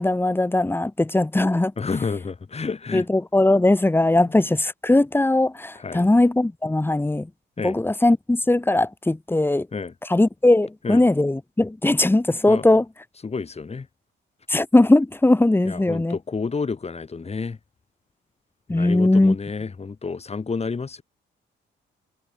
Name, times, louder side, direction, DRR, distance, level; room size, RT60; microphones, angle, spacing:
voice 1, 0.0-1.7 2.9-7.3 7.6-9.7 10.1-12.8 14.5-16.2 18.7-19.3, left 2 dB, 10° left, 1.3 m, -19 dB
voice 2, 1.8-3.1 4.3-4.4 5.8-6.1 7.6-7.8 9.7-9.9 10.8-11.0 12.5-12.7 13.2-13.9 15.6-17.6 18.7-21.0, left 4 dB, 30° left, 5.8 m, -30 dB
cardioid pair, 90°, 20 cm